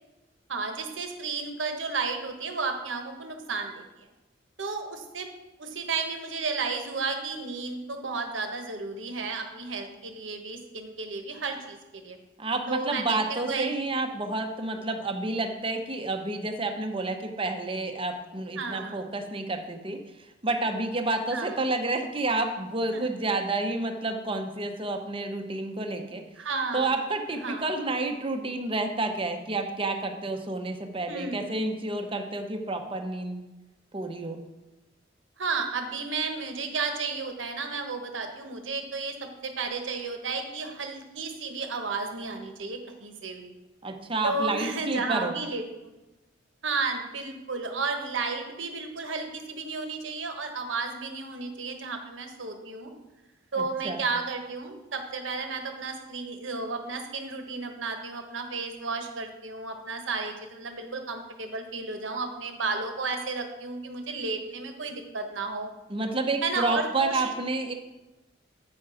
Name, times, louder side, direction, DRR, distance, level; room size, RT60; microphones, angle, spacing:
voice 1, 0.5-4.1 4.6-5.3 5.6-12.2 12.7-13.7 18.6-19.0 21.3-21.6 22.9-23.1 26.4-26.9 27.4-27.7 31.1-31.5 35.4-39.2 39.4-43.5 44.2-45.9 46.6-52.9 53.5-65.7 66.4-67.3, right 4 dB, 85° right, 5 dB, 1.1 m, -33 dB
voice 2, 12.4-26.2 26.7-33.4 33.9-34.4 43.8-45.4 53.5-54.0 65.9-67.7, right 2 dB, 30° right, 5 dB, 0.8 m, -30 dB
8.6 x 5.9 x 4.9 m, 1.0 s
head